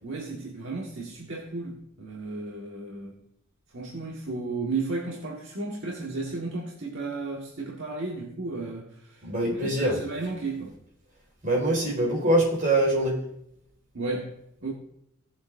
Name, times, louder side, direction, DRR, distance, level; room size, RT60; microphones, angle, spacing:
voice 1, 0.0-3.2 3.7-10.8 13.9-14.3 14.6-14.7, right 3 dB, 65° right, -2 dB, 1.5 m, -34 dB
voice 2, 9.2-10.0 11.4-13.2, right 1 dB, 40° right, -2 dB, 4.8 m, -24 dB
17.5 x 7.9 x 2.6 m, 0.75 s
head